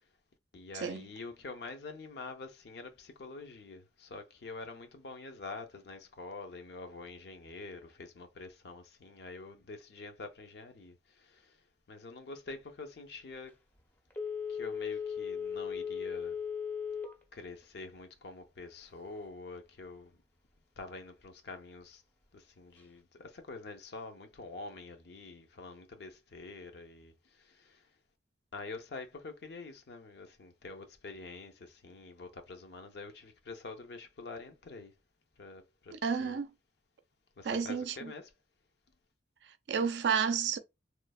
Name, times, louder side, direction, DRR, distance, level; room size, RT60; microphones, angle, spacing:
voice 1, 0.5-11.6 11.9-13.6 14.5-16.4 17.3-20.2 20.8-22.0 22.3-27.9 28.5-34.9 35.4-36.4 37.4-38.3, left 3 dB, 65° left, 0.5 m, -46 dB
Telephone, 14.1-17.2 17.6-17.7, left 7 dB, 10° left, 0.5 m, -37 dB
voice 2, 35.9-36.5 37.4-38.1 39.4-40.6, right 6 dB, 75° right, 0.4 m, -31 dB
3.1 x 2.0 x 2.3 m
head